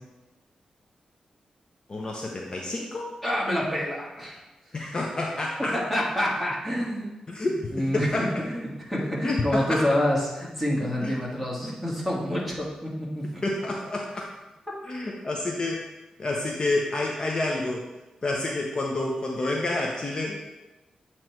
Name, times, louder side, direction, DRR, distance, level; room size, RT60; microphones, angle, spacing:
voice 1, 1.9-3.1 4.7-5.7 7.3-7.6 7.9-8.2 9.2-9.8 11.0-11.1 13.4-14.1 14.9-15.8 16.2-17.8 18.2-20.4, left 2 dB, 35° left, -1 dB, 0.6 m, -28 dB
voice 2, 3.2-4.4 5.7-7.1 7.4-8.2 8.4-13.4, equal, 5° left, -5 dB, 1.5 m, -27 dB
7.6 x 3.0 x 4.5 m, 1.1 s
wide cardioid pair, 110°, 2 cm